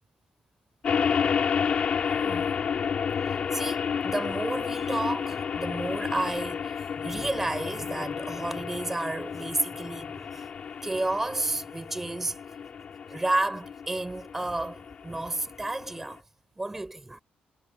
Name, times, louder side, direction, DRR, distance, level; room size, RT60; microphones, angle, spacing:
sound 1, 0.8-16.1, left 7 dB, 40° left, 5.1 m, -31 dB
voice 1, 2.1-2.5 3.3-10.5 10.8-12.4 13.1-16.2 16.6-17.2, right 2 dB, 10° right, 5.7 m, -31 dB
cardioid pair, 160°, 3 cm